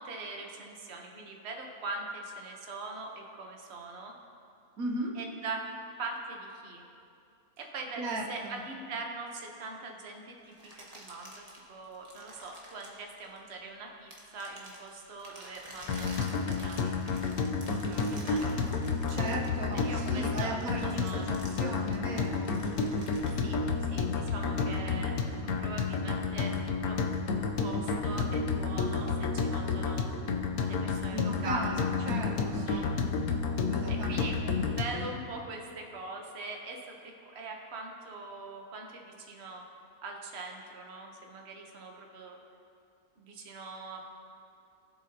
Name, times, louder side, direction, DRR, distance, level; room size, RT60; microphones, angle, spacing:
voice 1, 0.0-4.1 5.1-5.7 6.0-6.8 7.6-16.9 17.8-18.7 19.7-21.3 23.4-25.1 25.4-26.6 26.8-27.0 27.3-30.1 30.6-31.6 32.3-32.9 33.9-39.6 40.0-42.4 43.2-44.0, right 3 dB, 50° right, 1 dB, 1.3 m, -42 dB
voice 2, 4.8-5.2 8.0-8.6 19.1-22.6 31.1-32.9 33.7-34.5, right 2 dB, 80° right, 1 dB, 1.4 m, -37 dB
sound 1, 10.5-13.7 14.1-23.3, right 1 dB, 25° right, 1.5 m, -50 dB
sound 2, 15.9-35.1, left 4 dB, 90° left, 1.3 m, -31 dB
20.5 x 7.6 x 2.9 m, 2.5 s
omnidirectional pair, 1.5 m